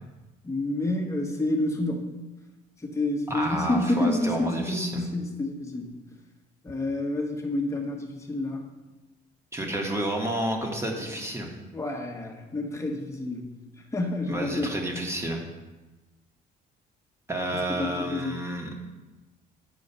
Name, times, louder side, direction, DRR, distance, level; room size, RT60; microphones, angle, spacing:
voice 1, 0.4-2.0 2.8-5.9 6.6-8.7 11.7-13.5 13.9-14.7 17.8-18.4, left 2 dB, 15° left, 2 dB, 1.3 m, -28 dB
voice 2, 3.3-5.0 9.5-11.5 14.3-15.4 17.3-18.7, right 1 dB, 15° right, 1 dB, 1.3 m, -30 dB
8.3 x 4.7 x 5.5 m, 1.1 s
cardioid pair, 110°, 17 cm